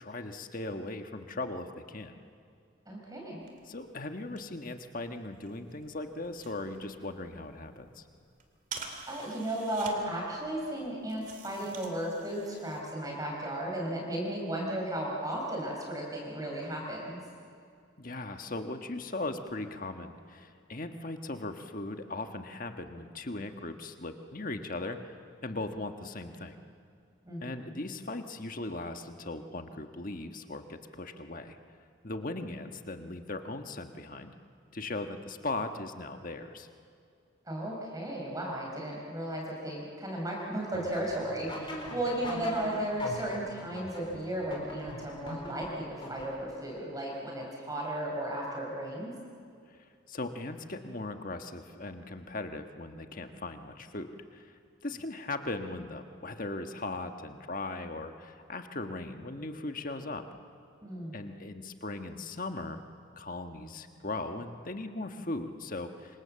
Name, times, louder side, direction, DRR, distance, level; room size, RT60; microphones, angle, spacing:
voice 1, 0.0-2.2 3.7-8.0 18.0-25.2 25.4-26.6 27.4-31.6 32.0-34.3 34.7-36.7 49.7-54.5 54.8-60.4 61.1-62.8 63.2-66.2, left 2 dB, 40° left, 6 dB, 1.5 m, -38 dB
voice 2, 2.9-3.4 9.1-17.2 27.2-27.8 37.5-49.1 60.8-61.2, right 1 dB, 15° right, -2 dB, 4.8 m, -35 dB
sound 1, 3.4-12.8, right 5 dB, 40° right, 2.8 m, -49 dB
sound 2, 40.7-46.6, left 1 dB, 25° left, 4.4 m, -42 dB
27.0 x 25.5 x 7.7 m, 2.3 s
head